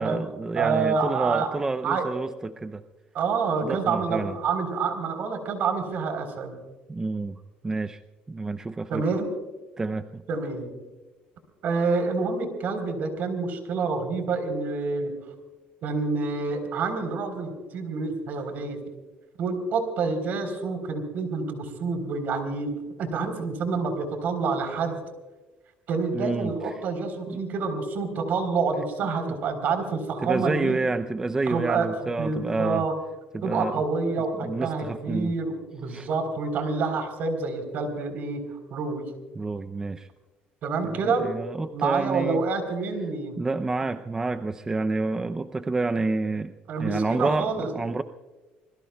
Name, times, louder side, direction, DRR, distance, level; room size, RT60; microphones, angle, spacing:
voice 1, 0.0-2.8 3.6-4.4 6.9-8.0 8.3-9.1 9.8-10.2 26.1-26.8 27.3-27.4 29.2-29.3 30.2-32.9 33.3-33.8 34.4-35.3 35.9-36.1 39.4-40.1 40.8-42.4 43.4-46.5 46.8-48.0, right 3 dB, 15° right, 9 dB, 0.6 m, -29 dB
voice 2, 0.6-1.5 1.8-2.1 3.1-6.6 8.9-9.3 10.3-10.7 11.6-15.1 15.8-18.8 19.4-25.0 25.9-30.8 31.5-31.9 32.2-32.9 33.4-39.1 40.6-41.3 41.7-43.4 46.7-47.7, right 4 dB, 55° right, 7 dB, 3.9 m, -27 dB
27.5 x 21.0 x 2.3 m, 1.2 s
cardioid pair, 115°, 4 cm